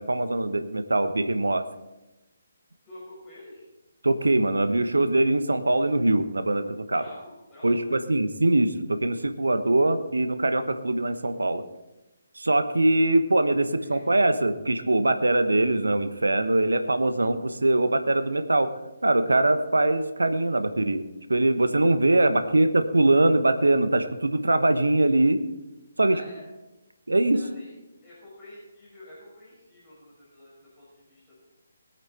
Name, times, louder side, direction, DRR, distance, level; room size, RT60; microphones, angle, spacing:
voice 1, 0.0-1.6 4.0-7.0 7.6-11.6 12.4-18.7 19.0-25.4 26.0-26.2 27.1-27.4, right 2 dB, 75° right, 10 dB, 1.2 m, -22 dB
voice 2, 2.8-3.6 6.9-8.0 13.7-14.1 22.3-22.6 26.0-26.4 27.3-27.7 28.0-31.3, left 1 dB, 10° left, -9 dB, 5.5 m, -48 dB
20.5 x 9.0 x 4.2 m, 1.0 s
figure-of-eight pair, 140°, 0 cm